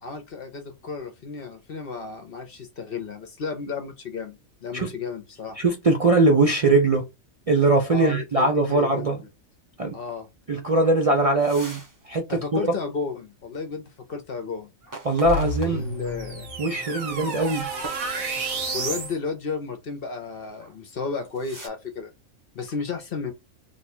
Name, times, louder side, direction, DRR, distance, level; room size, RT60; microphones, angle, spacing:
voice 1, 0.0-5.6 7.9-9.2 9.9-10.3 12.3-14.7 15.6-16.5 18.7-22.1 22.5-23.3, left 4 dB, 55° left, 0.7 m, -33 dB
voice 2, 5.6-7.1 7.5-9.2 9.8-10.0 10.5-12.7 15.0-15.8 16.6-17.7, right 2 dB, 70° right, 0.3 m, -21 dB
sound 1, 11.4-12.0 12.4-12.5 14.8-16.2 16.8-17.0 17.8-18.7 20.5-20.7 21.1-21.7, right 2 dB, 20° right, 0.6 m, -42 dB
sound 2, 15.2-19.2, right 2 dB, 90° right, 1.6 m, -30 dB
2.9 x 2.3 x 4.2 m
omnidirectional pair, 1.4 m